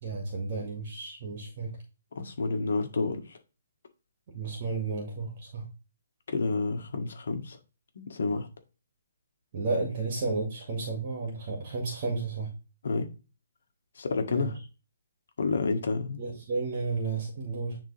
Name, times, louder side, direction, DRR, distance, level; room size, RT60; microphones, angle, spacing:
voice 1, 0.0-1.7 4.3-5.7 9.5-12.5 14.3-14.5 16.2-17.8, right 3 dB, 35° right, 2.0 m, -32 dB
voice 2, 2.1-3.4 6.3-7.6 7.9-8.5 12.8-13.1 13.9-14.6 15.4-16.2, left 3 dB, 65° left, 1.6 m, -29 dB
9.9 x 3.6 x 3.4 m
hypercardioid pair, 170°, 0 cm